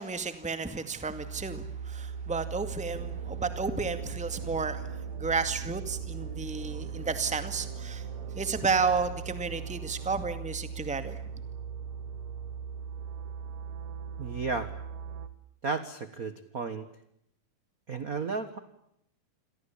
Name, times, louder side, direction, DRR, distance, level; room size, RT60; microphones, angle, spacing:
voice 1, 0.0-8.1 8.3-11.2, right 4 dB, 5° right, 10 dB, 1.5 m, -32 dB
sound 1, 0.8-15.3, right 7 dB, 90° right, 3.0 m, -39 dB
sound 2, 2.9-11.0, right 6 dB, 60° right, 3.7 m, -48 dB
voice 2, 14.2-14.7 15.6-16.9 17.9-18.6, right 4 dB, 40° right, 11 dB, 1.3 m, -33 dB
29.5 x 23.5 x 8.5 m, 0.75 s
omnidirectional pair, 3.6 m